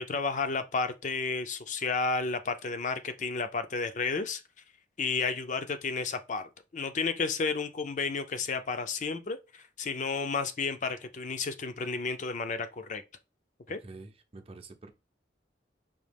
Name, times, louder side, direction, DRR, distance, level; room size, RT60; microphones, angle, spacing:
voice 1, 0.0-4.4 5.0-13.0 13.7-13.8, left 4 dB, 45° left, 0.5 m, -32 dB
voice 2, 13.7-14.9, right 3 dB, 35° right, 0.6 m, -48 dB
5.2 x 2.8 x 3.4 m
head